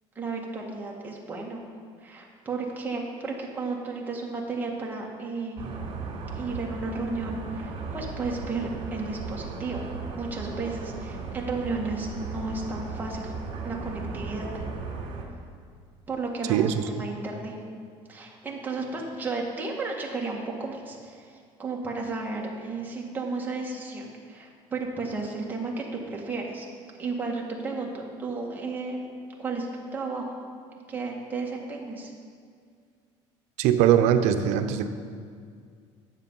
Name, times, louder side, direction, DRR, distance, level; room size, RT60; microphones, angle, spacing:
voice 1, 0.1-1.6 2.0-5.7 6.3-13.3 13.6-14.5 16.1-17.6 18.1-26.7 27.0-27.9 28.2-29.0 29.4-29.7 29.9-30.3 30.9-32.1, right 3 dB, 15° right, -2 dB, 1.6 m, -33 dB
sound 1, 5.6-15.2, right 4 dB, 50° right, 2.5 m, -36 dB
voice 2, 16.5-17.0 33.6-34.9, right 9 dB, 80° right, 9 dB, 0.7 m, -22 dB
10.5 x 7.5 x 5.5 m, 2.1 s
cardioid pair, 140°, 12 cm